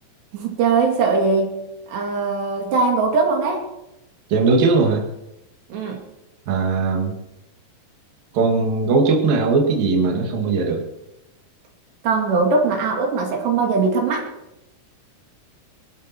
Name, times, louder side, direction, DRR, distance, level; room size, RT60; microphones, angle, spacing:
voice 1, 0.3-3.6 5.7-6.0 12.0-14.3, right 4 dB, 75° right, 1 dB, 4.5 m, -21 dB
voice 2, 4.3-5.0 6.5-7.1 8.3-10.8, right 4 dB, 60° right, 0 dB, 3.9 m, -19 dB
25.0 x 12.5 x 4.6 m, 0.92 s
omnidirectional pair, 4.9 m